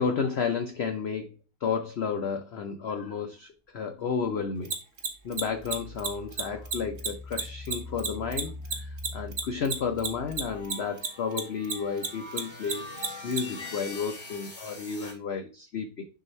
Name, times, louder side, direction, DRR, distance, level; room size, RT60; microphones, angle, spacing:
voice 1, 0.0-3.5 3.7-4.7 5.2-12.8 13.2-16.1, left 6 dB, 60° left, 5 dB, 0.7 m, -32 dB
Mechanisms, 4.6-11.4 11.6-13.4, right 6 dB, 45° right, 1.2 m, -30 dB
Engine, 5.0-10.9, left 1 dB, 20° right, 0.4 m, -44 dB
sound 1, 10.4-15.1, left 2 dB, 15° left, 2.2 m, -43 dB
6.4 x 2.9 x 5.3 m, 0.33 s
omnidirectional pair, 1.7 m